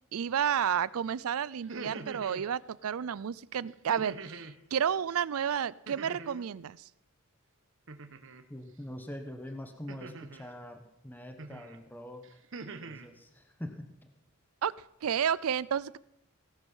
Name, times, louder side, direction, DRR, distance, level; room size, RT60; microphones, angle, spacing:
voice 1, 0.1-6.9 14.6-14.7 15.0-16.0, right 8 dB, 80° right, 21 dB, 0.4 m, -31 dB
sound 1, 1.5-2.5 3.9-4.6 5.9-6.5 7.9-8.4 9.9-10.5 11.4-11.8 12.2-13.1, right 3 dB, 60° right, 1.1 m, -44 dB
voice 2, 8.5-12.2 12.8-13.8, left 1 dB, 10° left, 6 dB, 1.0 m, -43 dB
17.0 x 11.5 x 5.5 m, 0.85 s
head